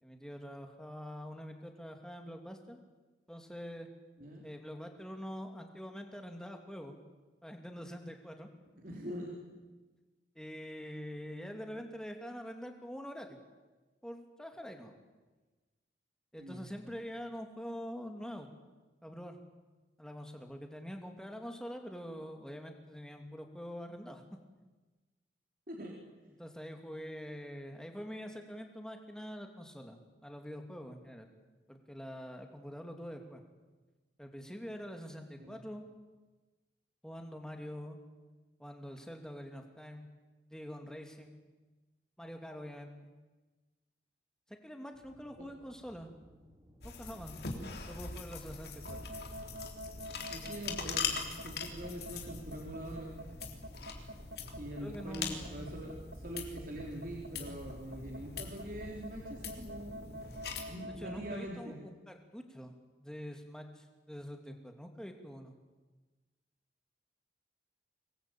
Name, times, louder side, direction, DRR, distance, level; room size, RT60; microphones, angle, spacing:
voice 1, 0.0-2.8 3.3-3.9 4.4-7.0 7.4-8.5 10.3-13.4 14.0-14.9 16.3-18.5 19.0-19.4 20.0-24.2 26.4-31.3 31.7-33.4 34.2-35.9 37.0-38.0 38.6-40.1 40.5-41.3 42.2-42.9 44.5-46.1 46.8-47.4 47.9-49.0 54.8-55.7 60.9-65.5, equal, 5° left, 4 dB, 2.7 m, -45 dB
voice 2, 8.8-9.4 16.4-16.7 25.7-25.9 35.4-35.6 50.3-51.2 51.4-53.2 54.6-60.1 60.7-61.8, right 1 dB, 50° right, -1 dB, 3.9 m, -43 dB
sound 1, 44.9-61.4, equal, 25° right, 3.2 m, -54 dB
sound 2, 46.8-60.6, left 5 dB, 60° left, 3.4 m, -42 dB
sound 3, 48.8-61.4, equal, 85° right, 2.3 m, -47 dB
25.0 x 20.5 x 9.1 m, 1.2 s
head